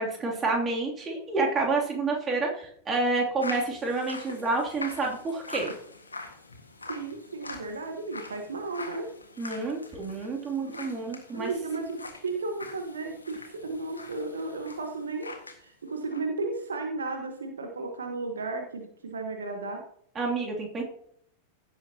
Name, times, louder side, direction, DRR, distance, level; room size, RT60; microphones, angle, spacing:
voice 1, 0.0-5.7 9.4-11.5 20.1-20.8, right 3 dB, 20° right, -1 dB, 2.8 m, -29 dB
sound 1, 3.4-15.6 15.9-16.2, left 3 dB, 80° left, 1.7 m, -43 dB
voice 2, 6.9-9.1 10.7-10.9 11.3-15.3 15.6-19.8, right 3 dB, 70° right, 4 dB, 1.3 m, -34 dB
16.0 x 7.4 x 2.9 m, 0.66 s
figure-of-eight pair, 90°, 0 cm